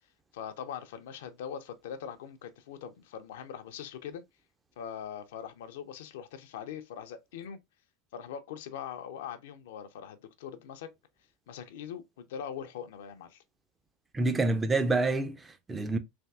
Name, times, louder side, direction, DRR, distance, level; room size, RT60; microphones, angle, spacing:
voice 1, 0.3-4.2 4.8-7.6 8.1-10.9 11.5-13.4, left 8 dB, 65° left, 0.4 m, -42 dB
voice 2, 14.1-16.0, right 2 dB, 15° right, 0.4 m, -27 dB
3.4 x 2.5 x 2.2 m
figure-of-eight pair, 80°, 0 cm